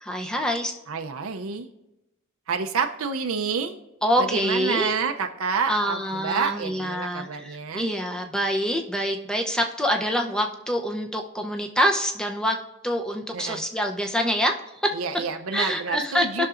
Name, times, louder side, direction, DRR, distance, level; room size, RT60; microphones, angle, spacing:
voice 1, 0.0-0.7 4.0-4.9 5.7-12.6 12.8-14.6 14.8-15.0 15.5-16.5, equal, 5° left, 3 dB, 0.6 m, -25 dB
voice 2, 0.9-1.7 2.5-3.8 4.2-7.9 13.3-13.6 14.9-16.5, right 5 dB, 80° right, 5 dB, 0.6 m, -28 dB
18.0 x 6.0 x 2.5 m, 0.95 s
head